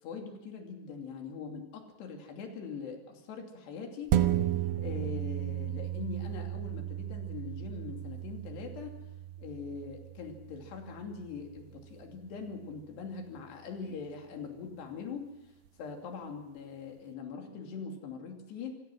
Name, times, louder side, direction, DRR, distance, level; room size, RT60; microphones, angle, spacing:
voice 1, 0.0-8.9 9.4-15.3 15.8-18.8, left 5 dB, 75° left, 3 dB, 4.8 m, -42 dB
sound 1, 4.1-12.9 13.4-13.5, right 12 dB, 75° right, 2.8 m, -35 dB
27.0 x 16.5 x 6.3 m, 0.98 s
omnidirectional pair, 4.8 m